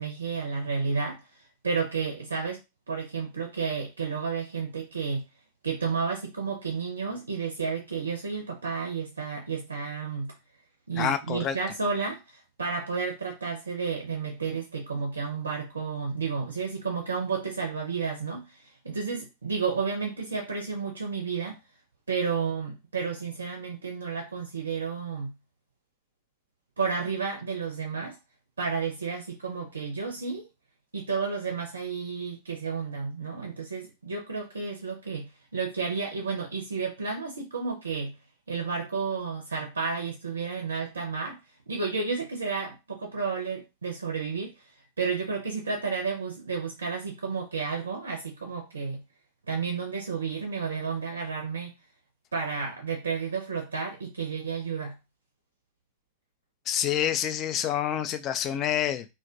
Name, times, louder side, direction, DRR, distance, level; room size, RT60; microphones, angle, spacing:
voice 1, 0.0-2.6 2.9-5.3 5.6-10.3 10.9-21.6 22.1-25.3 26.8-28.2 28.6-30.5 30.9-38.2 38.5-41.4 41.7-44.5 45.0-49.0 49.5-51.7 52.3-55.0, right 5 dB, 75° right, 0.4 m, -31 dB
voice 2, 11.0-11.6 56.7-59.1, left 10 dB, 35° left, 0.3 m, -27 dB
2.1 x 2.1 x 2.7 m
figure-of-eight pair, 90°, 0 cm